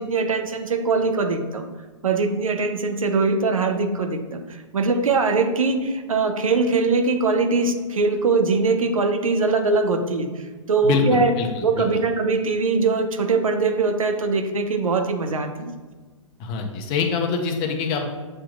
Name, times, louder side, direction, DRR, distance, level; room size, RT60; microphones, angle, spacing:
voice 1, 0.0-1.7 2.0-10.3 10.7-11.3 11.6-15.7, right 4 dB, 85° right, 6 dB, 0.7 m, -22 dB
voice 2, 10.8-11.8 16.4-18.1, left 4 dB, 30° left, 3 dB, 0.7 m, -24 dB
7.5 x 2.9 x 2.4 m, 1.3 s
hypercardioid pair, 130°, 17 cm